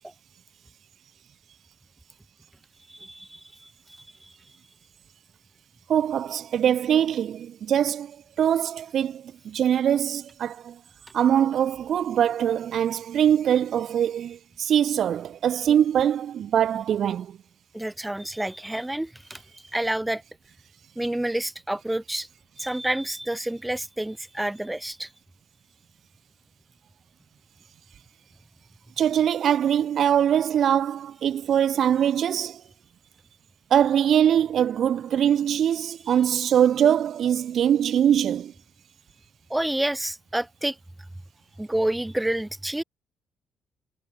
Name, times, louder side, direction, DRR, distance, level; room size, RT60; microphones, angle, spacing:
voice 1, 2.9-3.7 4.2-4.3 17.7-19.4 19.7-20.2 21.0-22.3 22.6-25.1 39.5-40.7 41.6-42.8, right 1 dB, 10° right, 6.8 m, -28 dB
voice 2, 5.9-10.8 11.1-17.4 29.0-32.6 33.7-38.5, right 9 dB, 65° right, 2.9 m, -22 dB
cardioid pair, 90°, 0 cm